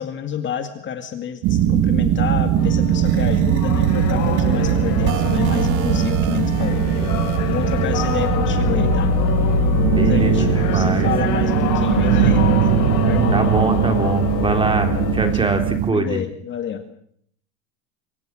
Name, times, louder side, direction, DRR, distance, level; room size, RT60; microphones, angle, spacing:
voice 1, 0.0-7.2 7.5-9.1 10.0-12.7 13.0-13.4 15.3-15.5 15.9-16.8, left 8 dB, 30° left, 7 dB, 2.1 m, -29 dB
sound 1, 1.4-15.9, right 11 dB, 50° right, 1.8 m, -20 dB
sound 2, 2.6-15.4, left 6 dB, 45° left, 6.9 m, -24 dB
sound 3, 3.0-8.3, right 11 dB, 65° right, 2.1 m, -30 dB
voice 2, 10.0-11.1 13.3-16.2, right 2 dB, 10° right, 6 dB, 3.4 m, -23 dB
26.0 x 25.0 x 6.4 m, 0.67 s
supercardioid pair, 140°, 41 cm